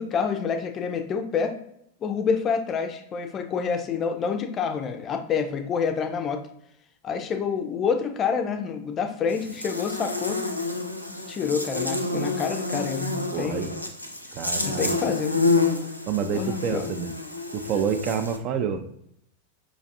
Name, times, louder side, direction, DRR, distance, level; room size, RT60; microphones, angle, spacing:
voice 1, 0.0-1.6 2.0-6.4 7.0-10.4 11.1-13.7 14.6-15.4 16.3-16.9, left 6 dB, 30° left, 6 dB, 0.4 m, -28 dB
Buzz, 9.3-18.4, left 3 dB, 85° left, 0.4 m, -28 dB
voice 2, 13.3-13.7 14.3-15.1 16.1-17.1 17.5-18.8, right 7 dB, 40° right, 7 dB, 0.4 m, -28 dB
5.1 x 2.4 x 2.6 m, 0.74 s
figure-of-eight pair, 90°, 0 cm